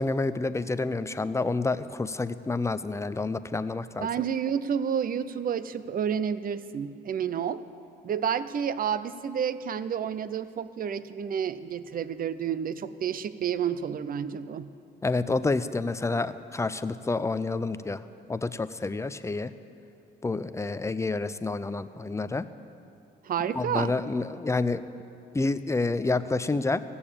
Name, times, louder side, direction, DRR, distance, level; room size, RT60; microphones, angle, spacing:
voice 1, 0.0-4.1 15.0-18.0 18.3-19.5 20.2-22.5 23.5-24.8 25.3-26.8, left 3 dB, 15° left, 13 dB, 0.5 m, -28 dB
voice 2, 4.0-7.6 8.0-14.7 23.2-23.9, right 8 dB, 45° right, 15 dB, 0.5 m, -30 dB
15.5 x 7.0 x 8.6 m, 2.7 s
cardioid pair, 90°, 20 cm